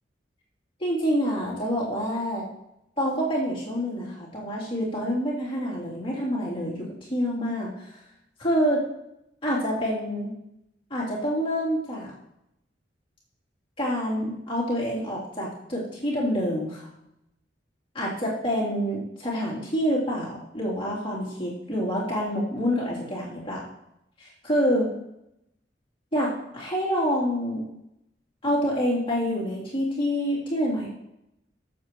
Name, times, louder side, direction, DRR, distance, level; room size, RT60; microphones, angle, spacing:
voice 1, 0.8-2.5 3.0-7.9 8.4-8.8 9.4-10.3 10.9-12.1 13.8-16.9 17.9-23.6 24.2-24.9 26.1-27.6 28.4-30.9, equal, 30° left, -6 dB, 3.0 m, -27 dB
14.5 x 7.2 x 3.0 m, 0.83 s
head